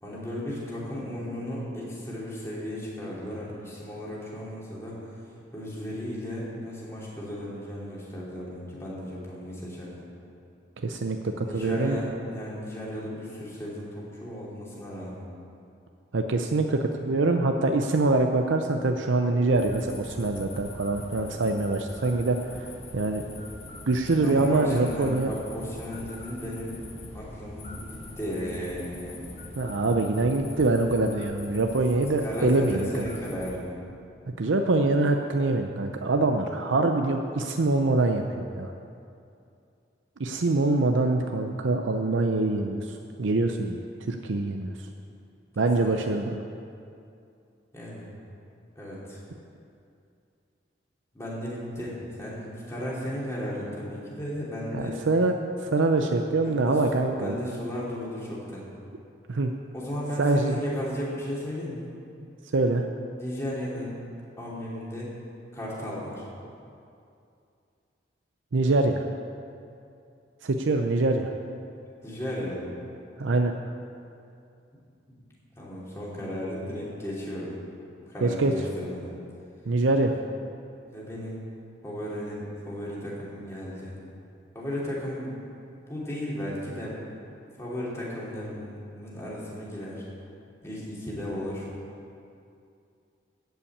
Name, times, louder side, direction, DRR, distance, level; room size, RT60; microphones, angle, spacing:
voice 1, 0.0-5.0 5.5-10.1 11.4-15.2 24.2-26.8 27.1-29.2 32.2-33.7 45.8-45.9 47.7-48.1 48.8-49.2 51.1-55.0 56.7-56.8 57.2-58.6 59.7-61.9 63.2-64.0 64.4-65.1 65.5-66.3 72.0-72.7 75.6-77.5 78.1-79.1 79.9-80.1 80.9-81.4 81.8-83.9 84.5-85.3 85.9-87.0 87.6-90.0 90.6-91.7, equal, 15° left, -6 dB, 2.8 m, -35 dB
voice 2, 10.8-12.0 16.1-23.2 23.9-25.3 29.6-33.1 34.4-38.7 40.2-44.7 45.6-46.4 54.7-55.3 55.6-57.4 59.3-59.5 60.2-60.6 62.5-62.9 68.5-69.1 70.4-71.3 73.2-73.5 78.2-78.5 79.7-80.2, right 2 dB, 85° right, 4 dB, 0.6 m, -24 dB
sound 1, 19.5-33.6, left 2 dB, 35° left, 1.3 m, -43 dB
14.0 x 5.7 x 8.5 m, 2.5 s
head